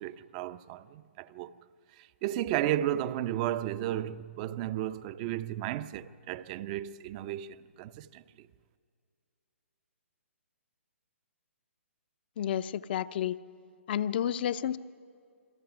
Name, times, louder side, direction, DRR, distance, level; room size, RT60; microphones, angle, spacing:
voice 1, 0.0-1.5 2.0-8.2, right 12 dB, 30° right, 0.6 m, -34 dB
voice 2, 12.4-13.4 13.9-14.8, left 10 dB, 45° left, 0.7 m, -30 dB
29.0 x 22.5 x 6.1 m
hypercardioid pair, 135°, 7 cm